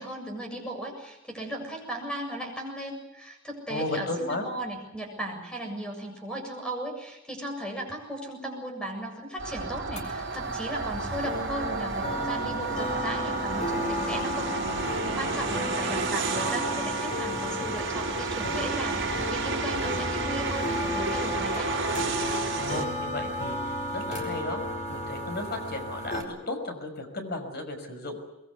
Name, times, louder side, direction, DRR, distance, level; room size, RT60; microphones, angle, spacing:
voice 1, 0.0-21.7, right 1 dB, 5° left, 2 dB, 7.4 m, -36 dB
voice 2, 3.7-4.4 22.6-24.6 24.9-28.2, left 2 dB, 50° left, 5 dB, 5.7 m, -34 dB
sound 1, 9.4-22.8, right 3 dB, 60° right, 5.8 m, -31 dB
sound 2, 9.9-26.2, left 1 dB, 35° left, 4.6 m, -33 dB
23.0 x 22.5 x 8.4 m, 0.96 s
head